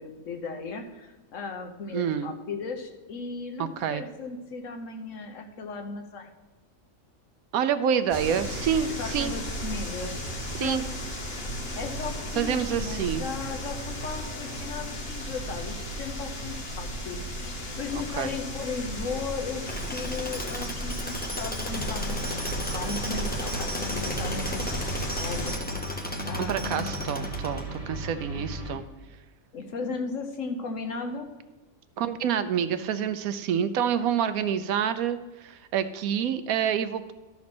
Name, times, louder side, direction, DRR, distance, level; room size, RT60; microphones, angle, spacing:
voice 1, 0.0-6.3 9.0-10.8 11.8-17.5 17.8-25.6 26.2-26.9 29.5-31.3, left 4 dB, 65° left, 5 dB, 1.3 m, -36 dB
voice 2, 1.9-2.3 3.6-4.0 7.5-9.3 10.5-10.8 12.4-13.2 18.2-18.4 26.4-28.8 32.0-37.1, right 8 dB, 80° right, 11 dB, 1.1 m, -27 dB
sound 1, 8.1-25.6, equal, 45° left, 1.5 m, -35 dB
Tools, 19.7-28.0, equal, 15° left, 0.3 m, -36 dB
sound 2, 21.7-28.8, equal, 25° right, 1.2 m, -35 dB
12.5 x 4.2 x 6.0 m, 1.1 s
omnidirectional pair, 1.5 m